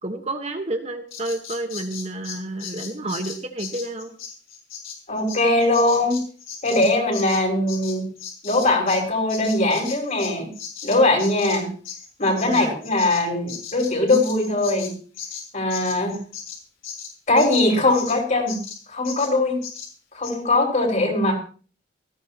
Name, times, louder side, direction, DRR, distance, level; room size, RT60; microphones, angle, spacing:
voice 1, 0.0-4.1 12.4-12.8, right 2 dB, 35° right, 5 dB, 1.3 m, -30 dB
Bird vocalization bird call bird song, 1.1-9.0 9.3-18.2 18.5-18.8 19.0-19.3 19.6-19.9 20.2-20.3, left 7 dB, 90° left, 4.5 m, -37 dB
voice 2, 5.1-6.2 6.6-8.0 8.4-10.5 10.8-11.7 12.2-14.9 15.5-16.2 17.3-18.6 18.9-19.6 20.1-21.3, left 2 dB, 40° left, 0 dB, 6.0 m, -21 dB
18.5 x 16.0 x 3.0 m, 0.40 s
head